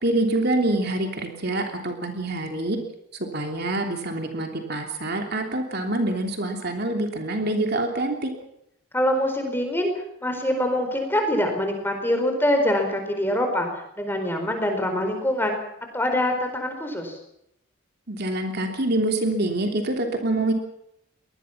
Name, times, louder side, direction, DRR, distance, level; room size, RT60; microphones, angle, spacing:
voice 1, 0.0-2.8 3.1-8.3 18.1-20.5, right 2 dB, 45° right, 3 dB, 3.1 m, -26 dB
voice 2, 8.9-9.9 10.2-13.7 14.0-15.6 15.9-17.2, left 1 dB, 10° left, 4 dB, 4.5 m, -24 dB
23.5 x 20.0 x 6.0 m, 0.78 s
head